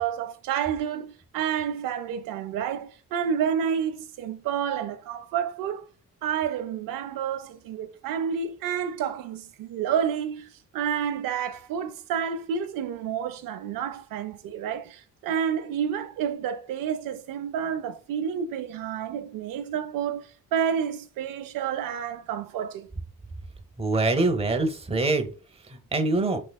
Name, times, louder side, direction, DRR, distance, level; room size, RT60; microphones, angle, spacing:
voice 1, 0.0-5.8 6.2-22.9, right 8 dB, 90° right, 0.5 m, -29 dB
voice 2, 23.8-25.3 25.7-26.4, right 2 dB, 20° right, 0.7 m, -24 dB
4.4 x 3.0 x 2.2 m
cardioid pair, 75°, 32 cm